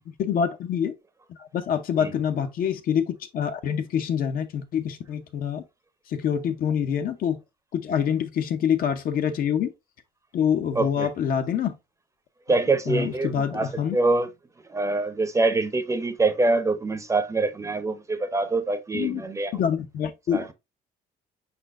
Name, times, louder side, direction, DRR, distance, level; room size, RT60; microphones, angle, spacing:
voice 1, 0.2-0.9 1.4-5.6 6.1-7.4 7.7-9.7 10.3-11.7 12.9-14.0 18.9-19.2 19.5-20.4, left 8 dB, 60° left, 0.7 m, -26 dB
voice 2, 10.7-11.1 12.5-14.3 14.7-19.6 20.3-20.5, right 3 dB, 20° right, 0.6 m, -25 dB
4.9 x 4.3 x 2.4 m
cardioid pair, 110°, 17 cm